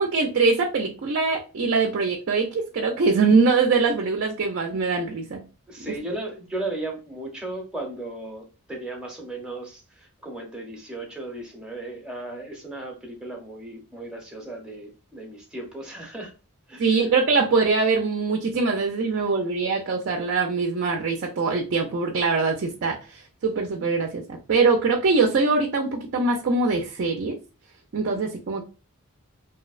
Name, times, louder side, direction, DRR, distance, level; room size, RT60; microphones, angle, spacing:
voice 1, 0.0-5.4 16.8-27.4 27.9-28.6, right 4 dB, 55° right, 1 dB, 0.4 m, -23 dB
voice 2, 5.7-16.3 16.7-17.0, right 2 dB, 5° right, 0 dB, 0.6 m, -36 dB
2.6 x 2.0 x 2.3 m, 0.32 s
head